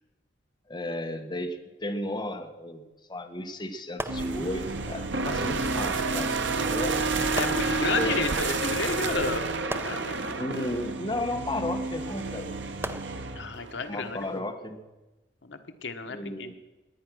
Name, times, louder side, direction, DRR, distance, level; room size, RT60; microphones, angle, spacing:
voice 1, 0.7-7.1 7.8-8.2 10.4-12.6 13.9-14.8 16.0-16.5, left 1 dB, 25° left, 4 dB, 1.3 m, -34 dB
sound 1, 4.0-5.0 6.3-6.4 7.4-8.4 9.7-11.0 12.8-13.9 14.6-14.8, right 1 dB, 15° right, 0.7 m, -39 dB
sound 2, 4.1-14.4, right 3 dB, 70° right, 1.3 m, -31 dB
sound 3, 4.2-9.4, right 5 dB, 90° right, 1.0 m, -35 dB
voice 2, 7.4-9.5 9.8-10.3 13.3-14.2 15.4-16.5, left 4 dB, 75° left, 8 dB, 1.2 m, -32 dB
20.5 x 9.7 x 6.2 m, 1.1 s
head